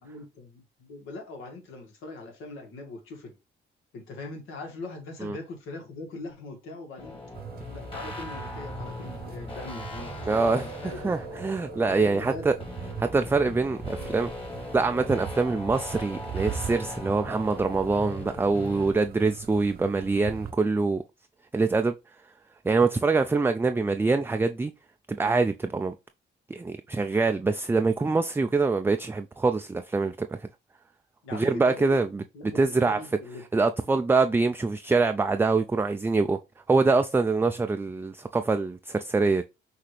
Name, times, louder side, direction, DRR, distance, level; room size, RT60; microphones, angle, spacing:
voice 1, 0.0-3.4 3.9-7.2 7.7-11.2 11.8-12.5 31.2-32.1 32.3-33.4, left 2 dB, 85° left, 1.9 m, -41 dB
sound 1, 7.0-18.9, left 2 dB, 25° left, 1.8 m, -39 dB
sound 2, 7.3-20.5, right 7 dB, 50° right, 0.9 m, -41 dB
voice 2, 10.3-10.6 11.0-12.5 13.0-14.3 14.7-21.0 21.5-21.9 22.6-24.7 25.1-25.9 26.5-30.5 31.3-33.0 33.5-36.4 36.7-39.4, right 3 dB, 10° right, 0.3 m, -24 dB
5.8 x 2.8 x 3.2 m
cardioid pair, 90°, 20 cm